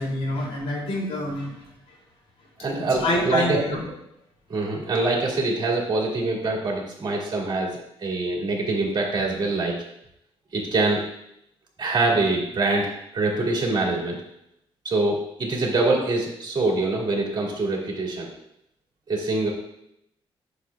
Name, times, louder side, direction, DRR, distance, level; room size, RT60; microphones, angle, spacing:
voice 1, 0.0-1.5 2.9-3.8, left 1 dB, 85° left, -3 dB, 3.0 m, -26 dB
voice 2, 2.6-3.6 4.5-9.8 10.5-11.0 11.8-14.2 14.8-18.3 19.1-19.5, right 2 dB, 45° right, -2 dB, 2.4 m, -24 dB
9.6 x 6.3 x 2.4 m, 0.77 s
cardioid pair, 110°, 10 cm